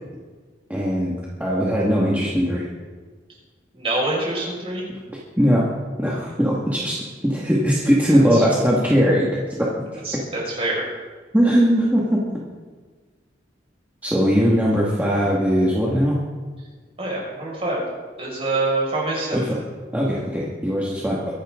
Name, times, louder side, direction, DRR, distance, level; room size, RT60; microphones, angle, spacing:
voice 1, 0.7-1.1 1.4-2.7 5.1-5.7 6.0-6.9 7.2-9.3 9.6-10.0 11.3-12.2 14.0-16.2 19.3-19.6 19.9-21.3, equal, 10° right, -6 dB, 1.9 m, -20 dB
voice 2, 3.7-4.9 8.1-8.5 10.0-10.9 17.0-17.8 18.2-19.4, right 2 dB, 35° right, -4 dB, 5.9 m, -25 dB
23.0 x 11.5 x 3.8 m, 1.5 s
head